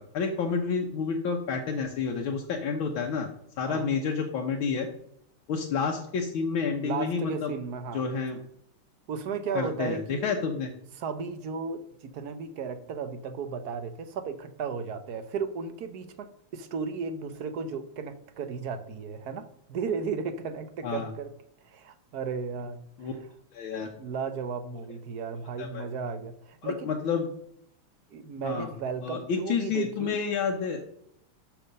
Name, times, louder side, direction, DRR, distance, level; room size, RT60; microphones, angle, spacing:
voice 1, 0.1-3.3 3.6-4.9 5.5-7.5 7.9-8.4 9.6-10.7 20.8-21.1 23.0-23.1 23.5-23.9 25.6-25.9 26.6-27.3 28.4-28.7 29.0-30.8, left 5 dB, 75° left, 1 dB, 1.8 m, -29 dB
voice 2, 6.8-8.1 9.1-10.3 11.0-21.3 21.6-23.2 23.8-26.9 28.1-30.2, right 5 dB, 60° right, 11 dB, 1.1 m, -35 dB
12.0 x 6.0 x 5.2 m, 0.72 s
omnidirectional pair, 2.3 m